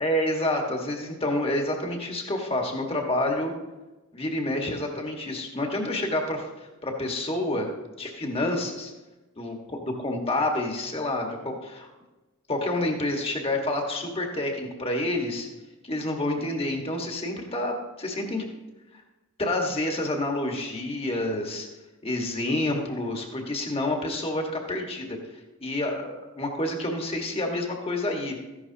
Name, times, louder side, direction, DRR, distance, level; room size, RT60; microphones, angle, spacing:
voice 1, 0.0-3.5 4.1-7.7 8.0-8.9 9.4-11.9 12.5-15.5 15.8-18.4 18.9-19.0 19.4-21.7 22.0-25.2 25.6-28.4, left 1 dB, 25° left, 1 dB, 1.6 m, -28 dB
14.5 x 11.5 x 2.9 m, 1.1 s
head